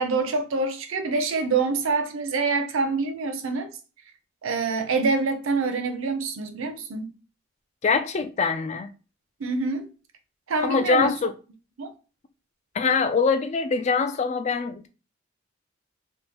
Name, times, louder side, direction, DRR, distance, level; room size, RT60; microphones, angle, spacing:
voice 1, 0.0-3.7 4.4-7.1 9.4-9.9 10.5-11.1 11.8-11.9, right 4 dB, 70° right, 0.5 m, -26 dB
voice 2, 7.8-8.9 10.6-11.3 12.7-14.9, left 4 dB, 35° left, 0.3 m, -23 dB
3.4 x 2.2 x 2.9 m
head